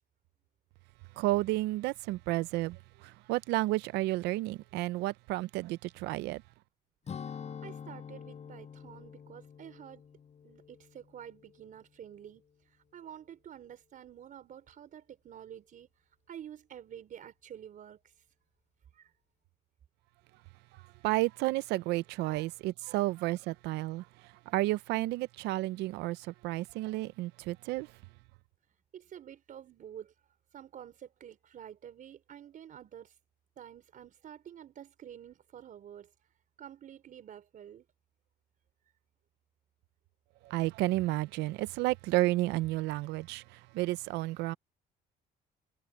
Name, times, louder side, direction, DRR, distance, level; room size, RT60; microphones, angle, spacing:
voice 1, 1.2-2.8 3.3-6.4 21.0-24.0 24.5-26.2 26.4-27.9 40.5-43.4 43.7-44.5, right 18 dB, 90° right, 0.6 m, -31 dB
Strum, 7.1-11.8 12.1-12.4, left 7 dB, 40° left, 6.4 m, -46 dB
voice 2, 7.6-10.0 10.4-18.3 18.9-19.1 22.2-22.5 22.8-23.2 28.9-33.2 33.6-36.3 36.6-37.9, right 9 dB, 55° right, 4.2 m, -49 dB
cardioid pair, 110°, 17 cm